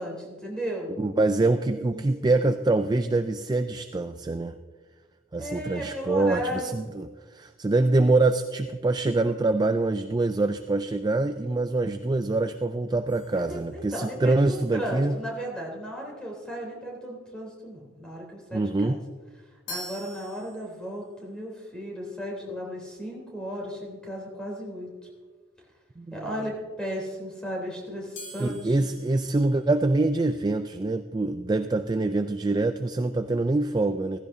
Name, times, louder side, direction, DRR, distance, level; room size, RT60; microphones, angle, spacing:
voice 1, 0.0-0.9 1.9-2.4 5.4-6.7 13.3-19.0 19.7-25.1 26.1-28.8, equal, 5° left, -2 dB, 3.3 m, -35 dB
voice 2, 1.0-4.6 5.3-15.2 18.5-19.0 26.0-26.3 28.4-34.2, right 2 dB, 20° right, 8 dB, 0.3 m, -25 dB
sound 1, 13.1-14.4 19.7-21.2 28.1-30.3, equal, 60° left, 2.9 m, -45 dB
15.5 x 15.5 x 2.7 m, 1.4 s
head